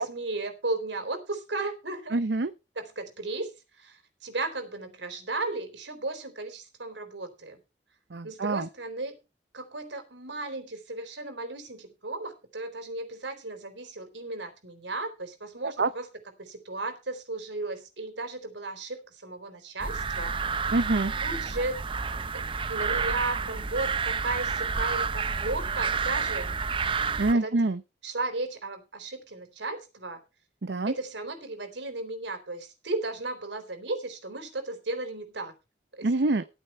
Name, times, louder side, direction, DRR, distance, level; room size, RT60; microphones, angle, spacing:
voice 1, 0.0-2.2 2.8-7.6 8.2-9.2 9.5-16.1 16.4-20.4 21.2-21.8 22.3-26.6 27.3-27.6 28.0-30.2 30.9-35.5 35.9-36.1, right 2 dB, 85° right, 8 dB, 3.8 m, -35 dB
voice 2, 2.1-2.5 8.1-8.7 15.6-15.9 20.7-21.1 27.2-27.8 30.6-30.9 36.0-36.4, right 2 dB, 70° right, 13 dB, 0.7 m, -25 dB
sound 1, 19.8-27.3, right 5 dB, 30° right, 0.6 m, -30 dB
14.0 x 9.2 x 4.4 m, 0.28 s
head